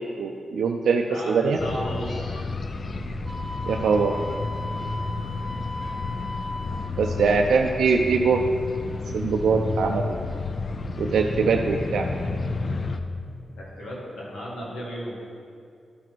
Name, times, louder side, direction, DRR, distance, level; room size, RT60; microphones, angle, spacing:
voice 1, 0.2-1.6 3.7-4.1 7.0-8.4 9.1-10.2 11.0-12.0, right 5 dB, 90° right, 2 dB, 0.4 m, -22 dB
voice 2, 1.1-2.4 13.5-15.2, equal, 80° left, -5 dB, 2.0 m, -34 dB
sound 1, 1.6-13.0, left 3 dB, 40° left, 0.4 m, -31 dB
Wind instrument woodwind instrument, 3.3-7.0, left 2 dB, 15° right, 1.2 m, -36 dB
11.5 x 4.1 x 4.5 m, 2.4 s
wide cardioid pair, 150°, 0 cm